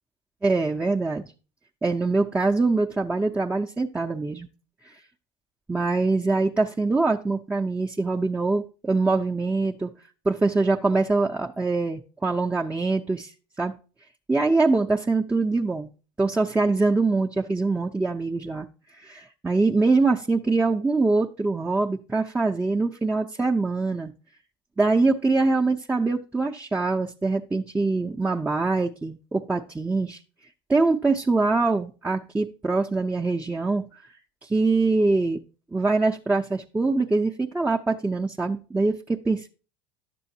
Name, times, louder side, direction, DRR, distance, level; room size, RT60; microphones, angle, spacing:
voice 1, 0.4-1.3 1.8-4.5 4.9-5.0 5.7-9.9 10.3-13.3 13.6-13.7 14.3-15.9 16.2-18.7 19.0-24.1 24.8-30.2 30.7-33.8 34.4-35.4 35.7-39.5, right 3 dB, 10° right, 0 dB, 0.5 m, -23 dB
10.0 x 6.8 x 2.7 m, 0.35 s
hypercardioid pair, 80°, 13 cm